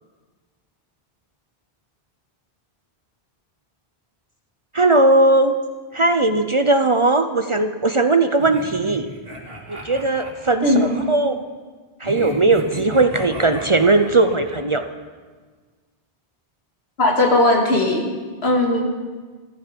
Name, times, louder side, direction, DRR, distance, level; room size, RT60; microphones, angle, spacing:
voice 1, 4.7-5.6 5.9-9.1 9.7-11.4 12.0-14.8, right 2 dB, 35° right, 8 dB, 0.6 m, -18 dB
sound 1, 8.4-11.1 12.0-14.6, right 1 dB, 65° right, 2.6 m, -35 dB
voice 2, 17.0-18.0 18.4-18.8, left 2 dB, 90° left, 0 dB, 2.5 m, -17 dB
14.5 x 14.5 x 5.2 m, 1.5 s
omnidirectional pair, 1.0 m